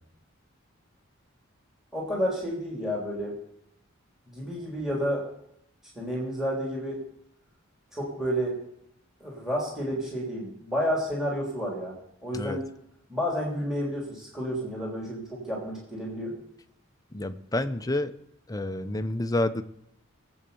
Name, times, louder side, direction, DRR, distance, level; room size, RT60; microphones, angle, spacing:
voice 1, 1.9-3.4 4.3-5.2 6.0-7.0 7.9-8.6 9.2-11.9 12.2-12.7 13.1-16.3, equal, 5° right, -2 dB, 3.4 m, -30 dB
voice 2, 17.1-18.1 18.5-19.6, left 1 dB, 15° left, 9 dB, 0.7 m, -29 dB
21.0 x 8.1 x 7.0 m, 0.76 s
head